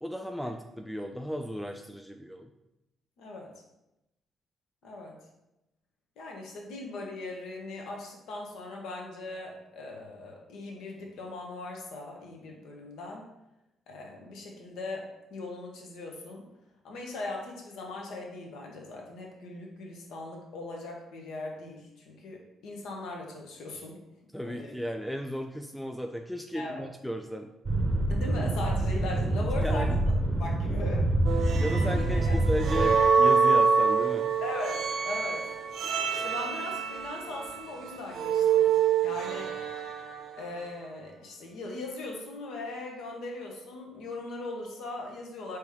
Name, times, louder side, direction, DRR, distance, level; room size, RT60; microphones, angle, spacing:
voice 1, 0.0-2.5 24.3-27.5 29.6-30.0 31.4-34.3, equal, ahead, 4 dB, 0.3 m, -35 dB
voice 2, 3.2-3.5 4.8-5.2 6.2-13.2 13.9-16.4 16.8-24.0 24.4-24.7 26.5-26.8 28.1-30.0 30.4-31.1 31.7-32.4 34.4-35.5 36.1-38.7 39.0-39.5 40.4-45.6, left 2 dB, 80° left, 0 dB, 1.0 m, -39 dB
sound 1, 27.6-32.9, right 1 dB, 25° right, 0.6 m, -26 dB
sound 2, 31.2-40.5, right 6 dB, 70° right, 0.5 m, -26 dB
4.8 x 3.1 x 3.5 m, 0.91 s
cardioid pair, 90°, 0 cm